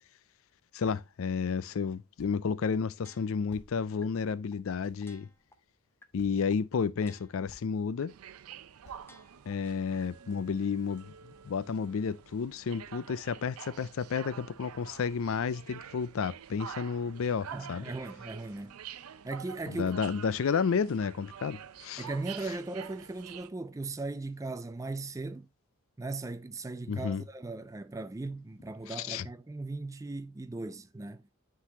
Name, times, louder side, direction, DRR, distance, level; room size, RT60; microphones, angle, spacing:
voice 1, 0.7-5.3 6.1-8.1 9.5-11.1 11.4-17.9 19.7-22.1 26.9-27.2 28.9-29.3, left 6 dB, 65° left, 0.4 m, -31 dB
sound 1, 0.8-1.1 2.2-2.5 3.5-4.2 4.8-5.5 6.2-6.4 7.1-7.2 7.5-7.7 8.8-9.1, left 1 dB, 90° left, 1.0 m, -56 dB
sound 2, 3.0-3.5 4.0-4.1 4.5-4.6 5.0-5.5 6.0-6.1 6.5-6.6 7.0-7.5 8.0-8.1 8.5-8.6 9.0-9.5 10.0-10.1, left 1 dB, 10° left, 0.8 m, -57 dB
sound 3, 8.1-23.5, right 8 dB, 80° right, 0.5 m, -48 dB
voice 2, 17.5-18.7 19.2-20.1 22.0-25.5 26.0-31.2, right 2 dB, 15° right, 0.3 m, -38 dB
9.8 x 3.9 x 2.8 m
head